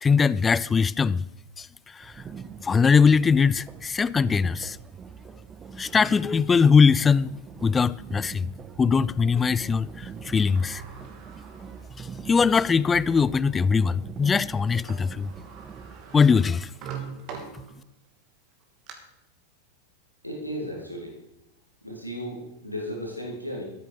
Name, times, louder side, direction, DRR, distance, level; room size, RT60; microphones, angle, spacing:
voice 1, 0.0-1.2 1.6-1.7 1.9-2.1 2.6-4.8 5.8-7.4 7.6-8.5 8.8-10.8 12.0-15.3 16.1-16.7, left 5 dB, 15° left, 0.4 m, -21 dB
sound 1, 2.0-16.0, right 6 dB, 20° right, 0.9 m, -43 dB
Sliding door, 10.0-12.6 13.2-13.3 14.6-14.7 14.9-18.1 18.5-18.9, right 6 dB, 40° right, 2.7 m, -43 dB
voice 2, 20.2-21.2 21.8-23.6, equal, 90° left, 3.8 m, -35 dB
14.0 x 12.5 x 5.2 m
figure-of-eight pair, 90°, 0 cm